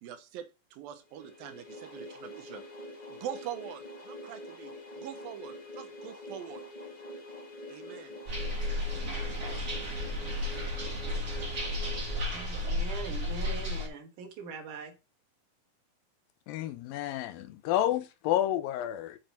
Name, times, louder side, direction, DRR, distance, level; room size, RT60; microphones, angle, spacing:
voice 1, 0.0-6.6 7.7-8.2 8.8-9.4, right 10 dB, 90° right, 2.8 m, -44 dB
sound 1, 1.1-12.9, left 1 dB, 30° left, 0.7 m, -45 dB
sound 2, 8.3-13.9, left 1 dB, 25° right, 1.7 m, -33 dB
voice 2, 12.3-14.9, right 4 dB, 70° right, 2.8 m, -42 dB
voice 3, 16.5-19.2, left 12 dB, 90° left, 2.6 m, -30 dB
7.7 x 5.9 x 4.3 m
omnidirectional pair, 4.0 m